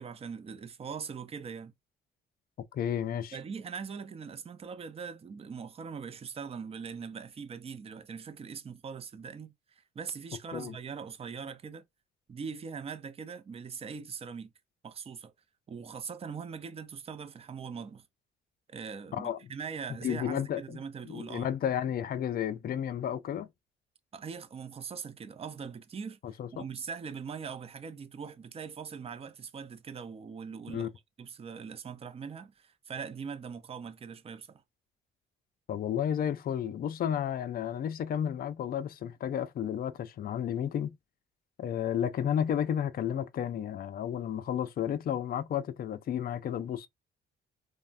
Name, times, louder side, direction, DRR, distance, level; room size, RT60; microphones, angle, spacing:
voice 1, 0.0-1.7 3.3-11.8 12.3-14.5 14.8-15.3 15.7-18.0 18.7-21.5 24.1-30.9 31.2-34.6, right 6 dB, 30° right, 0.5 m, -41 dB
voice 2, 2.7-3.4 10.5-10.8 19.1-19.4 20.0-20.8 21.1-23.5 26.4-26.6 30.7-30.9 35.7-40.9 41.6-46.9, left 9 dB, 50° left, 0.4 m, -32 dB
3.2 x 2.1 x 2.4 m
cardioid pair, 90°, 20 cm